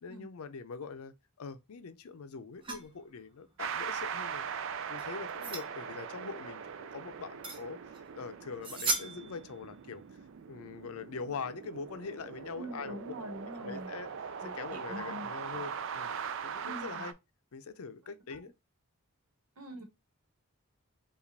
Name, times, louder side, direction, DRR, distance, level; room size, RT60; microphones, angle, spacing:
voice 1, 0.0-4.4 4.9-7.8 8.1-10.0 10.5-13.0 13.6-14.1 14.4-16.2 16.4-17.1 17.5-18.5, left 5 dB, 75° left, 0.5 m, -43 dB
sound 1, 2.6-2.9 4.9-5.7 7.4-7.6 7.9-8.0 8.6-9.5, right 3 dB, 20° right, 0.7 m, -35 dB
sound 2, 3.6-17.1, right 7 dB, 60° right, 0.4 m, -41 dB
voice 2, 12.5-13.9 14.4-15.3 16.6-17.0 18.0-18.5 19.6-19.8, equal, 85° right, 1.2 m, -44 dB
4.8 x 2.4 x 3.3 m
head